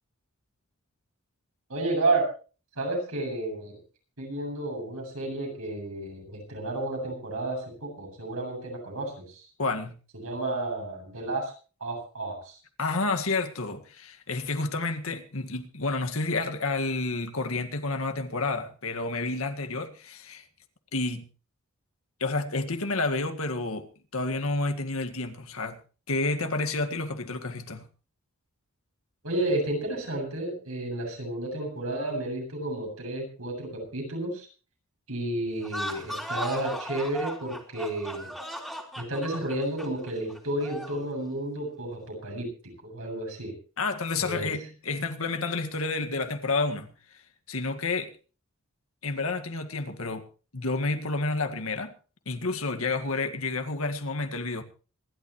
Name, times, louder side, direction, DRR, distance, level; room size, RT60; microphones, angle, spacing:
voice 1, 1.7-2.2 2.8-3.8 4.2-9.5 10.2-11.5 11.8-12.6 29.2-34.5 35.1-38.3 39.0-42.5 42.8-43.5 44.2-44.5, right 2 dB, 75° right, 7.9 m, -31 dB
voice 2, 9.6-10.0 12.8-20.4 20.9-21.3 22.2-23.9 24.1-25.8 26.1-27.9 43.8-46.9 47.5-48.1 49.0-50.3 50.5-51.9 52.3-54.6, left 3 dB, 70° left, 1.9 m, -30 dB
sound 1, 35.6-41.1, equal, ahead, 3.0 m, -37 dB
26.5 x 12.0 x 3.1 m
head